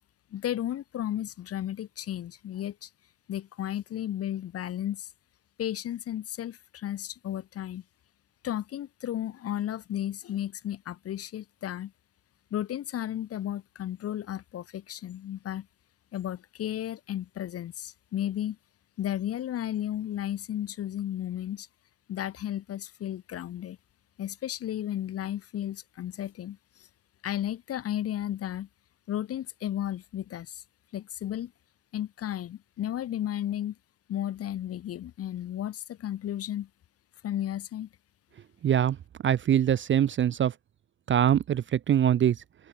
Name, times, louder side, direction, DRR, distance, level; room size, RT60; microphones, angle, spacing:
voice 1, 0.3-2.9 3.3-5.1 5.6-7.8 8.4-11.9 12.5-15.7 16.1-18.6 19.0-21.7 22.1-23.8 24.2-26.9 27.2-28.7 29.1-30.6 30.9-31.5 31.9-33.8 34.1-36.7 37.2-37.9, left 11 dB, 30° left, 1.1 m, -33 dB
voice 2, 38.6-39.0 39.2-40.5 41.1-42.4, right 10 dB, 25° right, 0.8 m, -23 dB
cardioid pair, 160°, 44 cm